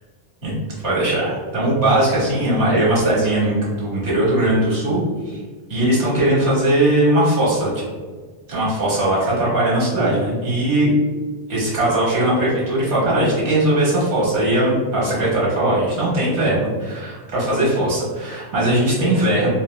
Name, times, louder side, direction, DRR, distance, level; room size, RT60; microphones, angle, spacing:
voice 1, 0.8-5.4 5.7-7.8 8.5-10.9 11.5-19.5, right 1 dB, 90° right, -7 dB, 1.5 m, -19 dB
4.0 x 2.2 x 2.2 m, 1.4 s
omnidirectional pair, 1.1 m